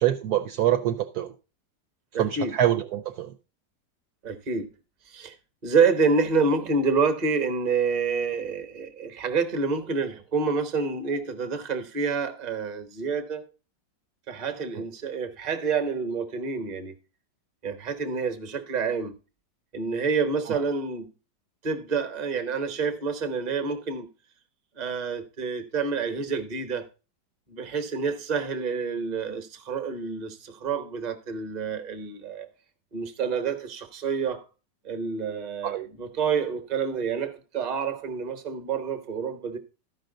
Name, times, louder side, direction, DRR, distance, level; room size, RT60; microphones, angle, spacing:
voice 1, 0.0-1.3 2.2-3.3 20.5-20.6 35.6-35.9, right 11 dB, 70° right, 1.0 m, -25 dB
voice 2, 2.1-2.5 4.2-4.7 5.1-5.3 5.6-13.4 14.3-16.9 17.6-19.1 19.7-21.1 21.6-24.1 24.8-26.9 27.5-32.5 32.9-34.4 34.8-39.6, right 5 dB, 30° right, 0.9 m, -28 dB
13.5 x 5.4 x 3.8 m
omnidirectional pair, 1.9 m